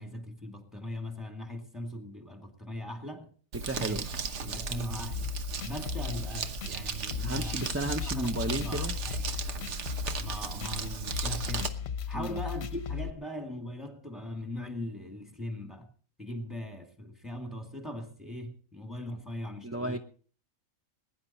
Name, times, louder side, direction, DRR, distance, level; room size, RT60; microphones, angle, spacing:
voice 1, 0.0-3.3 3.8-4.0 4.4-5.3 5.6-7.6 8.1-9.3 10.2-11.8 12.1-15.9 16.2-20.0, left 1 dB, ahead, 2.2 m, -40 dB
voice 2, 3.5-4.1 7.2-9.0 12.1-12.4 19.6-20.0, right 2 dB, 15° right, 0.5 m, -33 dB
Crumpling crinkling, 3.5-11.7, right 4 dB, 65° right, 1.3 m, -36 dB
sound 1, 5.1-13.1, left 7 dB, 60° left, 1.0 m, -37 dB
21.0 x 10.5 x 4.2 m
omnidirectional pair, 1.4 m